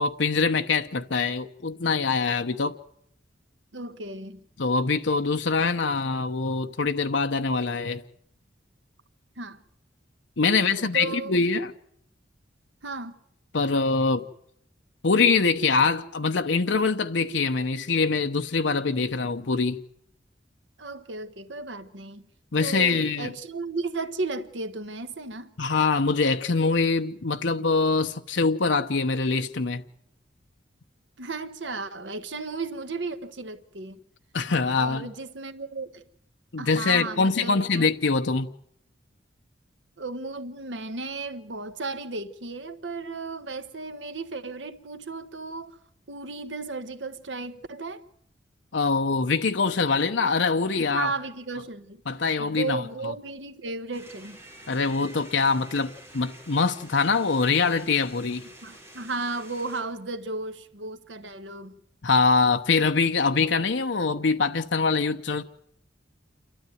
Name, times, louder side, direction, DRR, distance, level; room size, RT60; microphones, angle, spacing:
voice 1, 0.0-2.8 4.6-8.0 10.4-11.7 13.5-14.2 15.0-19.8 22.5-23.3 25.6-29.8 34.3-35.1 36.5-38.5 48.7-51.1 52.1-52.8 54.7-58.5 62.0-65.4, left 4 dB, 70° left, 0.9 m, -24 dB
voice 2, 3.7-4.4 9.4-9.6 10.5-11.3 12.8-13.2 20.8-22.3 22.6-25.5 31.2-34.0 34.6-36.0 36.6-37.9 40.0-45.8 46.1-48.0 50.9-52.0 52.4-54.4 58.6-61.8, right 3 dB, 70° right, 1.3 m, -34 dB
sound 1, 53.9-59.8, right 1 dB, 15° right, 5.4 m, -49 dB
28.0 x 13.0 x 9.2 m
head